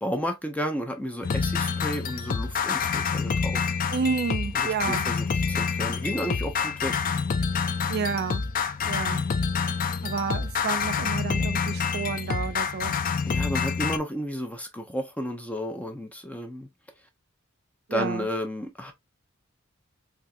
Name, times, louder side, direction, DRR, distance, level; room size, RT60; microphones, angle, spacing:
voice 1, 0.0-3.7 4.5-7.0 13.2-16.7 17.9-18.9, equal, 5° left, 0.7 m, -32 dB
sound 1, 1.2-14.0, left 5 dB, 40° left, 0.4 m, -27 dB
voice 2, 3.9-5.1 7.9-8.4 8.9-9.2 10.0-12.9 17.9-18.3, right 5 dB, 50° right, 0.4 m, -30 dB
3.5 x 2.8 x 2.5 m
head